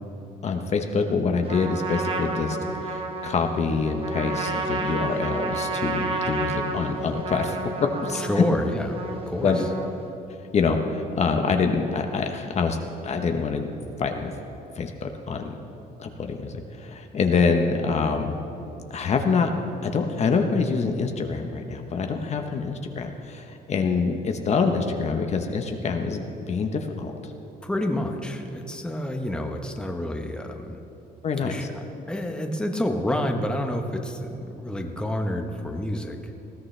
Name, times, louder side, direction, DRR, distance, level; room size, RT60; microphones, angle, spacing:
voice 1, 0.4-2.6 2.8-7.6 8.0-8.4 9.4-9.6 10.5-12.8 13.0-14.3 14.8-15.5 16.0-18.4 18.9-19.5 19.8-27.1 31.2-31.7, left 5 dB, 40° left, 4 dB, 1.0 m, -25 dB
Trumpet, 1.5-10.1, right 3 dB, 35° right, 1.5 m, -31 dB
voice 2, 8.1-9.0 9.3-9.5 27.6-30.8 31.4-31.7 32.1-36.3, left 1 dB, 5° left, 3 dB, 1.1 m, -28 dB
20.0 x 14.0 x 3.3 m, 2.9 s
cardioid pair, 110°, 17 cm